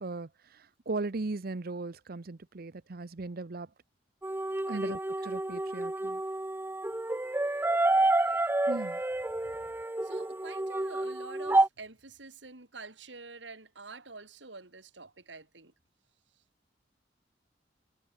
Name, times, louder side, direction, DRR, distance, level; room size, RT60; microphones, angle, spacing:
voice 1, 0.0-3.7 4.7-6.2 8.1-9.0, right 3 dB, 55° right, 0.7 m, -38 dB
sound 1, 4.2-11.7, right 2 dB, 10° right, 0.6 m, -29 dB
voice 2, 4.7-5.3 10.0-15.7, right 3 dB, 75° right, 3.3 m, -47 dB
head